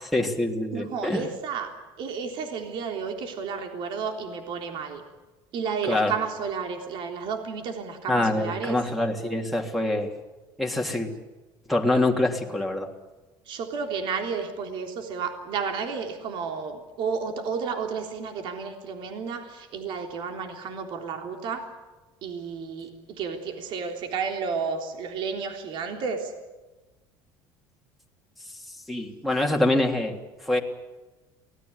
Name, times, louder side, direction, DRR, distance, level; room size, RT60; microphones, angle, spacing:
voice 1, 0.1-1.2 5.9-6.1 8.1-10.1 10.6-11.1 11.7-12.9 28.9-30.6, left 2 dB, ahead, 4 dB, 3.1 m, -25 dB
voice 2, 0.7-1.7 2.0-5.0 5.5-8.8 13.4-21.7 22.2-26.3, right 5 dB, 60° right, 4 dB, 3.6 m, -32 dB
24.0 x 18.5 x 9.7 m, 1.2 s
cardioid pair, 130°, 10 cm